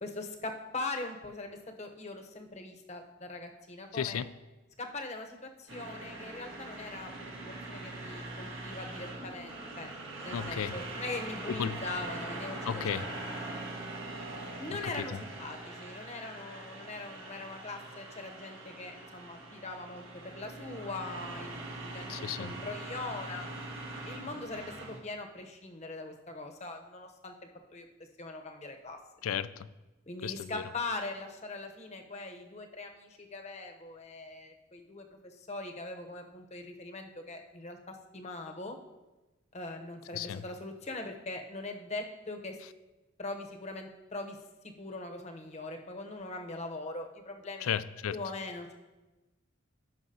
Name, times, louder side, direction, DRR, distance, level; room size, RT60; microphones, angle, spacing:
voice 1, 0.0-4.2 4.8-9.9 10.2-13.0 14.6-23.5 24.0-27.3 27.7-27.9 28.2-29.0 30.1-38.8 39.5-42.6 43.2-44.4 44.6-47.7 48.1-48.7, left 2 dB, 30° left, 4 dB, 0.8 m, -41 dB
voice 2, 3.9-4.3 10.3-10.7 11.5-11.8 12.7-13.1 15.0-15.2 22.1-22.5 29.2-29.7 30.2-30.6 40.1-40.4 47.6-48.2, left 8 dB, 85° left, 16 dB, 0.4 m, -34 dB
sound 1, 5.7-25.0, right 2 dB, 70° right, 1.6 m, -42 dB
16.0 x 5.9 x 2.8 m, 1.1 s
head